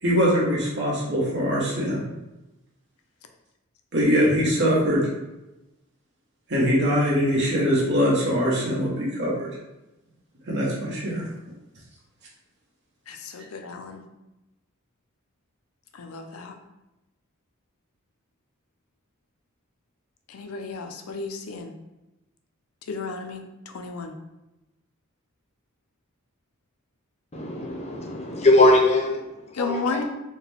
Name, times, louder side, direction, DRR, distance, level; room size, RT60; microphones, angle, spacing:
voice 1, 0.0-2.0 3.9-5.1 6.5-9.5 10.5-11.3, equal, 55° right, -4 dB, 1.2 m, -22 dB
voice 2, 13.1-14.0 15.9-16.5 20.3-21.7 22.9-24.2 29.5-30.0, left 4 dB, 75° left, 5 dB, 0.5 m, -33 dB
voice 3, 27.3-30.0, left 2 dB, 30° left, 0 dB, 0.7 m, -21 dB
4.6 x 2.2 x 3.4 m, 0.98 s
head